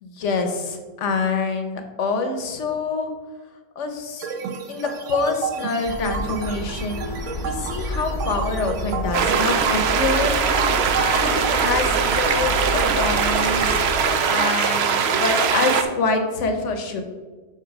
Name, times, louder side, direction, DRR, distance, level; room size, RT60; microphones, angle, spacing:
voice 1, 0.0-3.1 3.8-4.3 4.7-10.3 10.9-13.8 14.3-17.0, left 3 dB, 55° left, 6 dB, 1.0 m, -26 dB
sound 1, 4.2-12.2, right 7 dB, 60° right, 0.9 m, -32 dB
sound 2, 5.9-14.1, left 1 dB, 20° left, 0.6 m, -30 dB
sound 3, 9.1-15.8, right 6 dB, 80° right, 0.5 m, -21 dB
6.0 x 4.2 x 5.9 m, 1.4 s
omnidirectional pair, 1.8 m